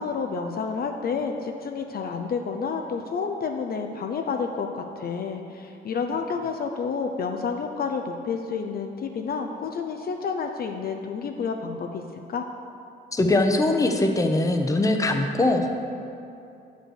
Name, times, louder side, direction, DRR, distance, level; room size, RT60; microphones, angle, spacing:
voice 1, 0.0-12.0 12.3-12.4, left 5 dB, 50° left, 4 dB, 0.6 m, -30 dB
voice 2, 13.1-15.7, left 2 dB, 15° left, 4 dB, 0.7 m, -21 dB
7.6 x 5.1 x 6.5 m, 2.7 s
cardioid pair, 90°, 20 cm